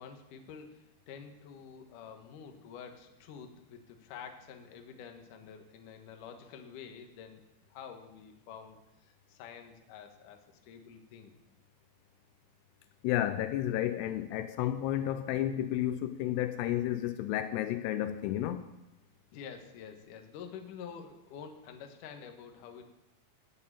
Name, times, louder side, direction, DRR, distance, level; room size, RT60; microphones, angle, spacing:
voice 1, 0.0-7.4 7.7-11.3 19.3-22.9, left 7 dB, 65° left, 5 dB, 2.4 m, -48 dB
voice 2, 13.0-18.6, left 12 dB, 85° left, 10 dB, 2.7 m, -31 dB
14.0 x 7.7 x 8.8 m, 0.95 s
omnidirectional pair, 4.8 m